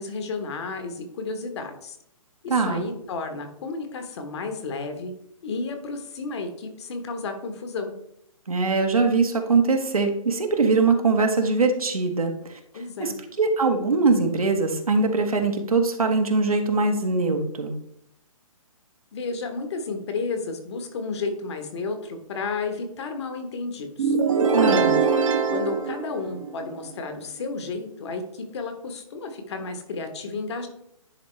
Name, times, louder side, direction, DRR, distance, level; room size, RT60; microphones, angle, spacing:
voice 1, 0.0-2.0 2.4-5.1 5.4-7.9 12.7-13.1 19.1-24.1 24.5-24.9 25.5-30.7, left 4 dB, 50° left, 6 dB, 1.3 m, -32 dB
voice 2, 2.5-2.8 8.5-12.6 13.0-13.1 13.4-17.7 24.5-24.9, right 4 dB, 85° right, 4 dB, 1.4 m, -22 dB
sound 1, 24.0-26.8, right 5 dB, 65° right, 1.1 m, -22 dB
10.5 x 3.6 x 3.3 m, 0.74 s
hypercardioid pair, 140°, 18 cm